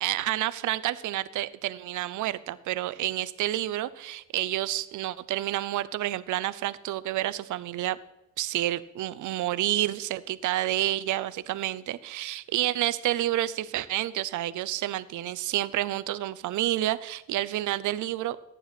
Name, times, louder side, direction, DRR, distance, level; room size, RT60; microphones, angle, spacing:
voice 1, 0.0-8.0 8.4-18.4, right 14 dB, 80° right, 16 dB, 0.7 m, -29 dB
14.5 x 10.0 x 4.1 m, 0.88 s
cardioid pair, 90°, 30 cm